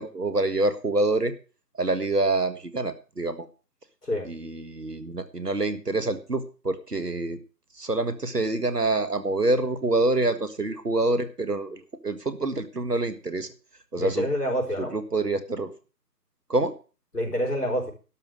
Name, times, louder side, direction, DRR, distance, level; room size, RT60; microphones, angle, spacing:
voice 1, 0.0-1.3 1.8-3.5 4.2-7.4 7.8-13.5 13.9-14.3 14.8-15.7 16.5-16.7, right 2 dB, 70° right, 11 dB, 1.8 m, -26 dB
voice 2, 14.0-15.0 17.1-17.9, equal, 65° left, 3 dB, 4.7 m, -27 dB
12.0 x 6.0 x 7.9 m, 0.35 s
figure-of-eight pair, 165°, 50 cm